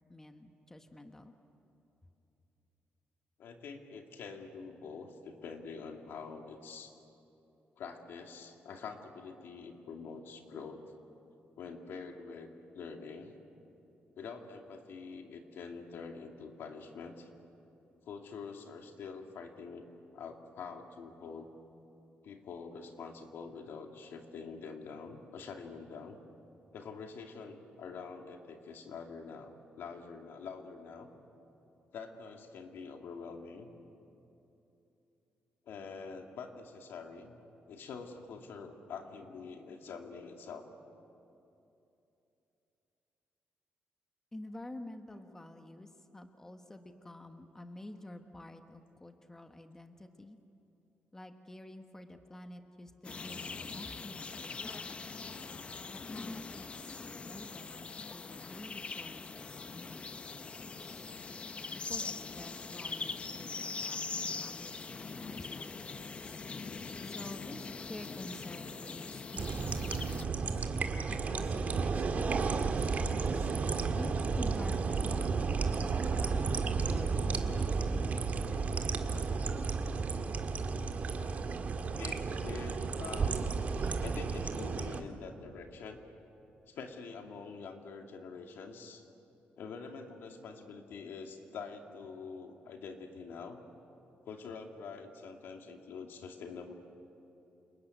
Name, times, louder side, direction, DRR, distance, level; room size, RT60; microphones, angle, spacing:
voice 1, 0.1-1.3 44.3-45.9 46.1-50.4 51.1-55.1 55.9-61.1 61.7-66.2 67.1-70.5 71.1-73.5 74.0-78.2, left 1 dB, 10° left, 6 dB, 1.3 m, -49 dB
voice 2, 3.4-6.9 7.8-10.8 11.6-13.4 14.2-17.3 18.0-19.9 20.1-21.5 22.2-26.2 26.7-31.1 31.9-33.7 35.7-37.4 37.7-40.9 81.8-83.4 83.8-86.0 86.7-89.1 89.6-93.6 94.2-96.7, left 5 dB, 75° left, 3 dB, 2.6 m, -46 dB
sound 1, 53.0-70.2, left 4 dB, 30° left, 0.8 m, -42 dB
sound 2, 69.4-85.0, right 4 dB, 45° right, 1.8 m, -32 dB
29.0 x 20.5 x 9.3 m, 2.9 s
cardioid pair, 125°, 4 cm